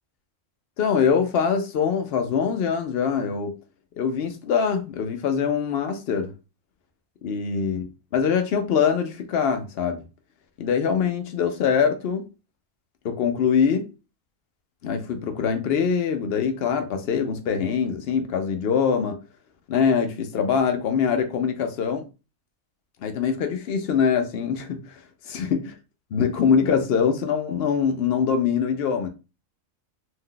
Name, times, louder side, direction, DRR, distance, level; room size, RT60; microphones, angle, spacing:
voice 1, 0.8-3.5 4.0-6.3 7.2-7.9 8.1-10.0 10.6-12.2 13.0-13.9 14.8-19.2 19.7-22.0 23.0-25.0 25.3-25.6 26.1-29.1, left 6 dB, 65° left, 0.6 m, -23 dB
2.7 x 2.2 x 3.6 m
omnidirectional pair, 1.4 m